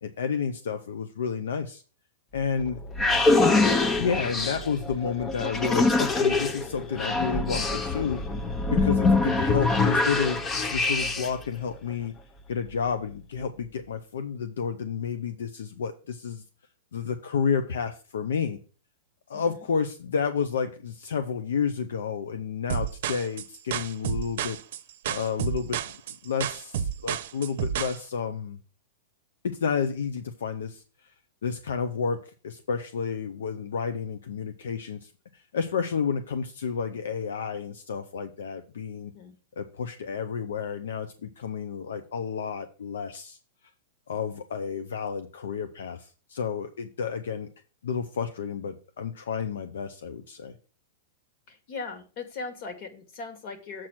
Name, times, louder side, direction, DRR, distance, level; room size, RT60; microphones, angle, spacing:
voice 1, 0.0-1.8 2.3-2.8 4.0-8.2 8.7-10.4 10.7-12.1 12.5-16.4 16.9-18.6 19.3-24.6 25.1-25.8 26.2-28.6 29.4-30.8 31.4-39.1 39.6-43.4 44.1-47.5 47.8-50.6, left 6 dB, 80° left, 9 dB, 0.7 m, -31 dB
sound 1, 2.4-11.4, left 3 dB, 20° left, 0.8 m, -24 dB
voice 2, 19.3-19.7 39.1-39.4 51.5-53.9, left 4 dB, 50° left, 6 dB, 2.0 m, -39 dB
sound 2, 22.7-28.0, right 8 dB, 65° right, 0.7 m, -30 dB
7.5 x 4.4 x 6.0 m, 0.38 s
hypercardioid pair, 120°, 0 cm